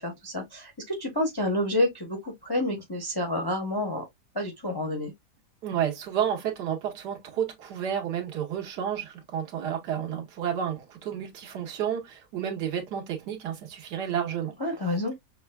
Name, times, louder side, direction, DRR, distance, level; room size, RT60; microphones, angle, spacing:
voice 1, 0.0-4.0 4.3-5.1 14.6-15.1, left 1 dB, 25° left, 0.5 m, -29 dB
voice 2, 5.6-14.5, right 9 dB, 85° right, 1.6 m, -31 dB
5.9 x 2.3 x 2.2 m
omnidirectional pair, 1.8 m